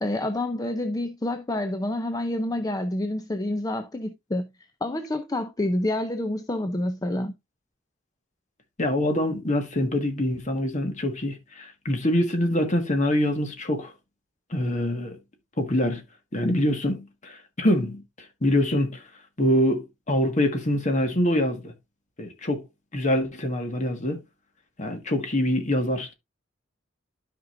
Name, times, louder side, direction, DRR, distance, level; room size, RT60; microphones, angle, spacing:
voice 1, 0.0-4.5 4.8-7.3, left 1 dB, 20° left, 0.6 m, -28 dB
voice 2, 8.8-13.9 14.5-15.2 15.6-16.0 16.3-18.0 18.4-19.0 19.4-21.7 22.2-22.6 22.9-24.2 24.8-26.1, left 1 dB, 40° left, 1.6 m, -25 dB
12.5 x 5.2 x 2.5 m
head